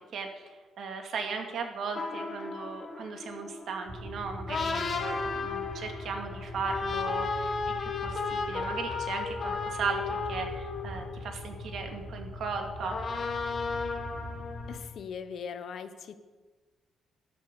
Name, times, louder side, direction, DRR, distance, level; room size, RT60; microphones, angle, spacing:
voice 1, 0.1-13.0, right 5 dB, 55° right, 4 dB, 2.3 m, -37 dB
sound 1, 1.9-12.3 12.8-14.8, left 4 dB, 35° left, 1.5 m, -35 dB
sound 2, 3.8-14.8, left 2 dB, 40° right, 4.6 m, -42 dB
voice 2, 14.7-16.1, left 7 dB, 50° left, 10 dB, 1.0 m, -40 dB
12.5 x 12.0 x 6.9 m, 1.3 s
cardioid pair, 165°, 0 cm